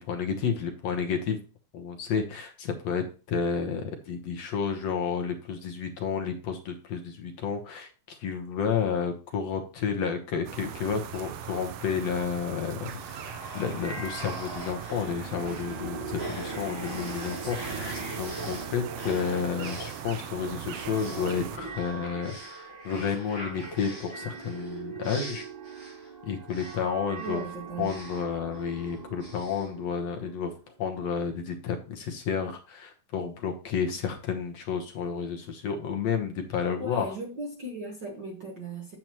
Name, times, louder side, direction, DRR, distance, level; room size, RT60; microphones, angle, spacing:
voice 1, 0.0-1.4 1.7-25.5 26.2-27.4 27.8-30.5 30.8-37.1, left 6 dB, 65° left, 2.0 m, -31 dB
sound 1, 10.4-21.6, right 10 dB, 85° right, 1.4 m, -40 dB
sound 2, 12.8-30.5, right 2 dB, 10° right, 4.3 m, -40 dB
voice 2, 27.2-27.9 36.8-39.0, right 2 dB, 50° right, 1.5 m, -37 dB
8.8 x 7.7 x 3.0 m
omnidirectional pair, 3.6 m